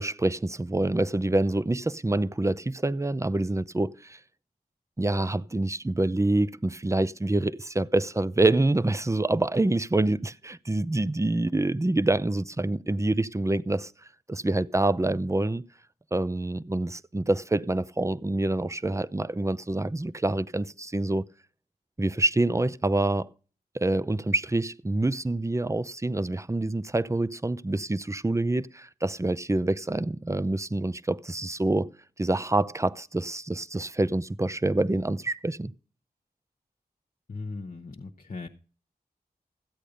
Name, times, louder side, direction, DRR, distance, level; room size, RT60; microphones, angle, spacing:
voice 1, 0.0-4.2 5.0-13.9 14.3-15.6 16.1-21.3 22.0-23.3 23.7-31.9 32.2-35.7, right 2 dB, 20° right, 0.6 m, -26 dB
voice 2, 37.3-38.5, left 3 dB, 55° left, 1.1 m, -38 dB
14.5 x 8.4 x 5.1 m
cardioid pair, 45°, 16 cm